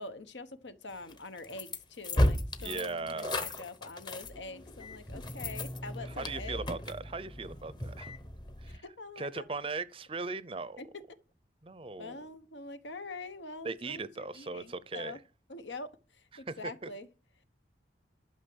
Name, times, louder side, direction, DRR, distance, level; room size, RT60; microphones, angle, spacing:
voice 1, 0.0-6.7 8.7-9.4 10.8-11.0 12.0-15.2 15.5-17.1, left 3 dB, 80° left, 1.2 m, -45 dB
sound 1, 1.1-8.8, left 1 dB, 25° left, 0.9 m, -35 dB
voice 2, 2.6-3.6 6.1-8.1 8.6-8.8 9.2-10.8 11.6-12.3 13.6-15.2 16.3-16.6, right 3 dB, 30° right, 0.5 m, -38 dB
11.5 x 5.9 x 7.8 m
head